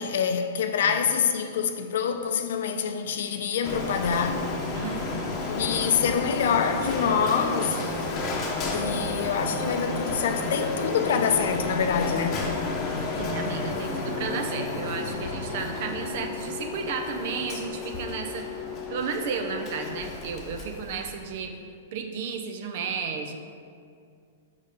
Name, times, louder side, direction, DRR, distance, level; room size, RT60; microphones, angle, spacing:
voice 1, 0.0-4.5 5.5-7.8 8.7-12.4, left 7 dB, 70° left, 0.5 m, -26 dB
Printer, 3.6-21.3, left 3 dB, 30° left, 0.9 m, -31 dB
voice 2, 4.7-5.3 9.6-9.7 13.2-18.4 18.9-21.5 21.9-23.4, right 6 dB, 55° right, 0.6 m, -33 dB
5.4 x 5.1 x 5.2 m
hypercardioid pair, 145°, 0 cm